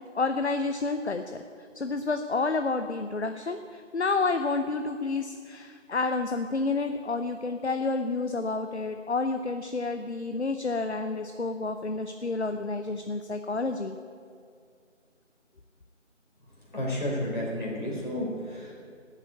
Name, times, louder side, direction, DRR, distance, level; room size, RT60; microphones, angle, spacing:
voice 1, 0.1-1.4 1.7-14.0, left 3 dB, 60° left, 7 dB, 0.7 m, -29 dB
voice 2, 16.7-18.7, left 1 dB, 40° left, -4 dB, 3.9 m, -31 dB
13.0 x 8.2 x 8.3 m, 2.2 s
figure-of-eight pair, 170°, 38 cm